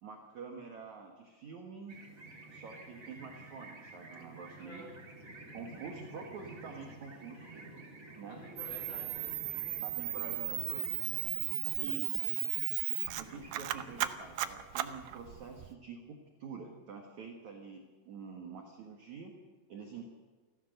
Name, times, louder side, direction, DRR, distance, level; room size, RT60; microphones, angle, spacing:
voice 1, 0.0-2.0 2.5-4.8 5.5-7.5 8.2-8.4 9.8-10.8 11.8-12.1 13.2-19.3 19.7-20.0, right 5 dB, 55° right, 2 dB, 2.5 m, -47 dB
sound 1, 1.9-14.1, right 2 dB, 25° right, 2.1 m, -51 dB
voice 2, 4.6-4.9 8.2-9.8 19.8-20.0, left 1 dB, 45° left, -2 dB, 7.8 m, -52 dB
Camera, 8.6-15.7, right 15 dB, 80° right, 2.4 m, -35 dB
29.5 x 13.5 x 6.7 m, 1.4 s
omnidirectional pair, 5.1 m